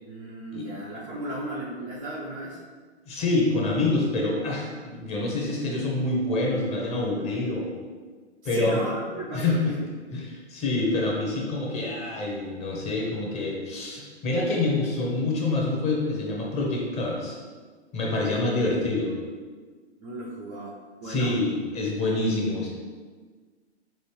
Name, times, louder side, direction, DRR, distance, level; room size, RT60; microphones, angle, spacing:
voice 1, 0.0-2.6 8.4-9.9 18.3-18.6 20.0-21.4, right 1 dB, 15° right, -7 dB, 0.4 m, -35 dB
voice 2, 3.1-7.7 8.4-8.8 9.3-9.7 10.1-17.4 17.9-19.1 21.0-22.7, left 2 dB, 20° left, -2 dB, 0.7 m, -26 dB
6.3 x 2.4 x 3.2 m, 1.5 s
figure-of-eight pair, 120°, 34 cm